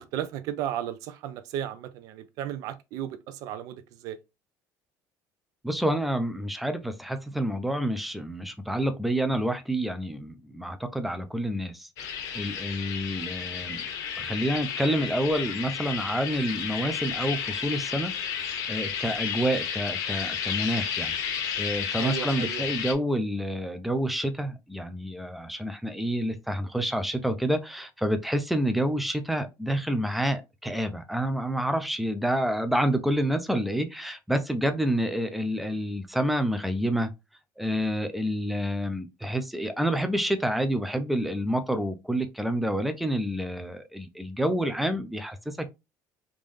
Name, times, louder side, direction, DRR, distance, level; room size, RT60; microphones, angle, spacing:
voice 1, 0.0-4.2 22.0-22.8, right 11 dB, 60° right, 0.5 m, -34 dB
voice 2, 5.6-13.8 14.2-21.1 21.6-37.1 37.6-45.7, equal, ahead, 0.4 m, -28 dB
sound 1, 12.0-22.9, left 8 dB, 55° left, 0.7 m, -32 dB
3.7 x 2.5 x 3.2 m
cardioid pair, 175°, 7 cm